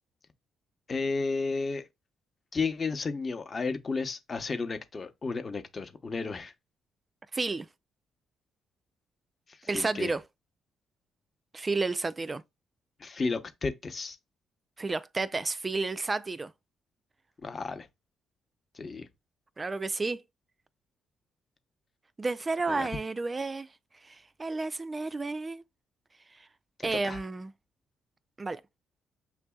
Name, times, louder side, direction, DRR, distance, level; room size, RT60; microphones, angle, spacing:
voice 1, 0.9-1.9 2.5-6.5 9.5-10.1 13.0-14.2 17.4-17.9 18.7-19.1 22.7-22.9 26.8-27.2, left 4 dB, 35° left, 0.8 m, -33 dB
voice 2, 7.3-7.7 9.7-10.2 11.5-12.4 14.8-16.5 19.6-20.2 22.2-23.7 24.0-25.6 26.8-27.5 28.4-28.6, right 3 dB, 25° right, 0.3 m, -31 dB
6.8 x 2.7 x 2.3 m
cardioid pair, 90°, 0 cm